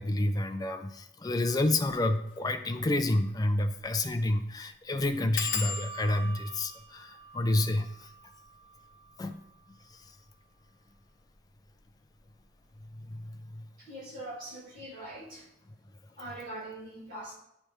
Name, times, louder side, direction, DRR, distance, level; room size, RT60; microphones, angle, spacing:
voice 1, 0.0-8.1 9.2-9.4 9.9-10.1 12.9-13.6, left 1 dB, 20° left, 7 dB, 0.4 m, -29 dB
sound 1, 2.2-2.4 2.8-2.9 3.1-3.2 3.8-4.0 4.3-4.4 5.3-10.6 11.3-11.8 12.1-12.5 12.7-12.8, left 5 dB, 85° left, 0.8 m, -40 dB
voice 2, 13.8-15.5 16.2-17.4, right 1 dB, 45° right, -6 dB, 2.3 m, -42 dB
10.0 x 3.4 x 3.1 m, 0.79 s
head